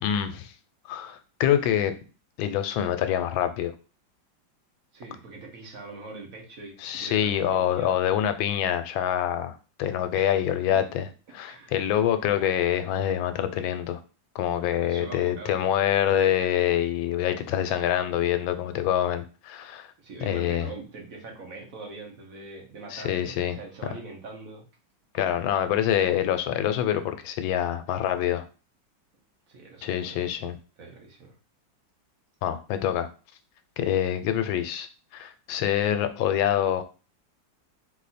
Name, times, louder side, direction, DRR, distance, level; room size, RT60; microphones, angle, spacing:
voice 1, 0.0-0.5 0.9-1.9 2.4-3.7 6.8-14.0 14.3-19.9 20.2-20.7 22.9-23.5 25.1-28.4 29.8-30.6 32.4-33.1 33.8-34.9 35.1-36.8, left 10 dB, 90° left, 10 dB, 1.4 m, -26 dB
voice 2, 4.9-7.9 10.1-10.3 11.4-11.8 14.8-15.7 20.0-24.6 29.5-30.3 30.8-31.3, right 3 dB, 50° right, 1 dB, 1.5 m, -43 dB
4.2 x 2.8 x 4.1 m, 0.34 s
omnidirectional pair, 2.1 m